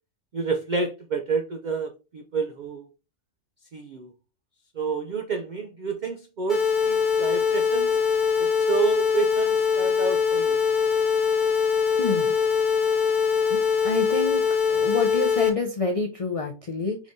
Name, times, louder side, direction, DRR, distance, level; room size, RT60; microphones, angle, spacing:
voice 1, 0.3-2.9 3.7-4.1 4.8-8.0 8.4-10.6, right 5 dB, 80° right, 0.4 m, -29 dB
sound 1, 6.5-15.5, left 6 dB, 40° left, 1.1 m, -22 dB
voice 2, 12.0-12.3 13.5-13.6 13.8-14.4 14.7-17.0, left 3 dB, 65° left, 0.3 m, -27 dB
4.8 x 3.7 x 2.6 m
omnidirectional pair, 1.4 m